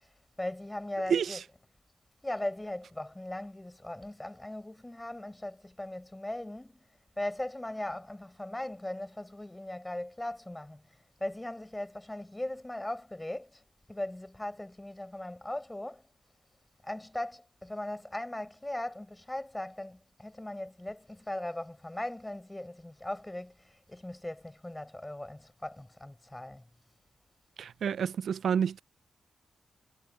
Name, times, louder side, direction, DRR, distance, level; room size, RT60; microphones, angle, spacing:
voice 1, 0.4-1.5 2.2-6.8 7.2-10.8 11.2-13.6 13.9-16.0 16.8-26.6, left 1 dB, 10° left, 4.5 m, -39 dB
voice 2, 27.6-28.8, right 7 dB, 75° right, 0.3 m, -29 dB
cardioid pair, 100°, 0 cm